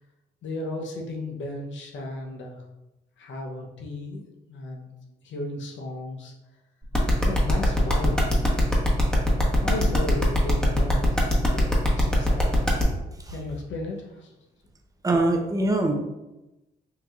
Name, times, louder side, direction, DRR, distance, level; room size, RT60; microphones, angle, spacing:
voice 1, 0.4-2.6 3.2-4.9 5.2-6.3 7.2-8.5 9.6-12.5 13.3-14.3, left 2 dB, 70° left, 0 dB, 0.9 m, -35 dB
sound 1, 6.9-12.8, left 2 dB, 5° left, 1.2 m, -24 dB
voice 2, 15.0-15.9, right 2 dB, 20° right, 3 dB, 0.8 m, -22 dB
5.8 x 2.8 x 2.5 m, 0.98 s
supercardioid pair, 60°, 20 cm